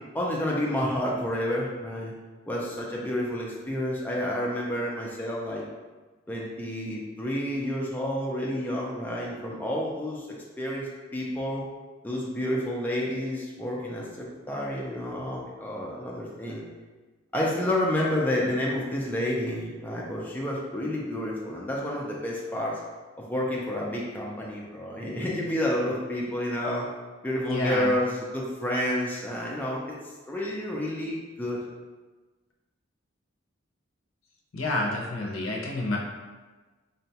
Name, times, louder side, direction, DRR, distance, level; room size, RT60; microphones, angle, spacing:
voice 1, 0.1-2.1 2.5-5.6 6.3-10.3 10.6-11.6 12.0-16.6 17.3-22.8 23.2-26.9 27.2-29.8 30.3-31.6, left 1 dB, 10° left, -4 dB, 0.4 m, -29 dB
voice 2, 27.5-27.9 34.5-36.0, left 2 dB, 80° left, -1 dB, 0.6 m, -29 dB
3.8 x 2.2 x 2.7 m, 1.3 s
head